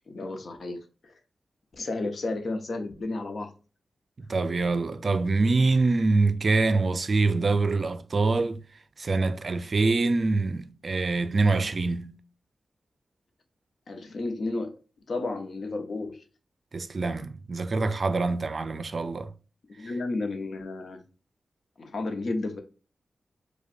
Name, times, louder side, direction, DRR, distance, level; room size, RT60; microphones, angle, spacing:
voice 1, 0.1-1.1 1.7-3.5 13.9-14.7 15.1-16.2 19.8-21.0 21.8-22.6, left 2 dB, 65° left, 0.8 m, -32 dB
voice 2, 4.2-8.6 9.0-12.2 16.7-19.3, right 3 dB, 55° right, 0.4 m, -25 dB
5.0 x 2.2 x 2.5 m
cardioid pair, 65°, 0 cm